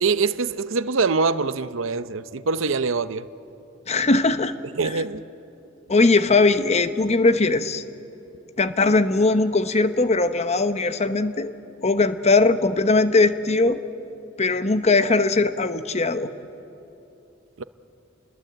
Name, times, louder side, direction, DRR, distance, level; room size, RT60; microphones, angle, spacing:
voice 1, 0.0-3.3 4.7-5.2 17.6-17.7, right 4 dB, 75° right, 0.7 m, -24 dB
voice 2, 3.9-4.5 5.9-7.8 8.6-11.5 11.8-13.8 14.4-16.3, left 3 dB, 35° left, 0.9 m, -20 dB
30.0 x 21.0 x 8.0 m
head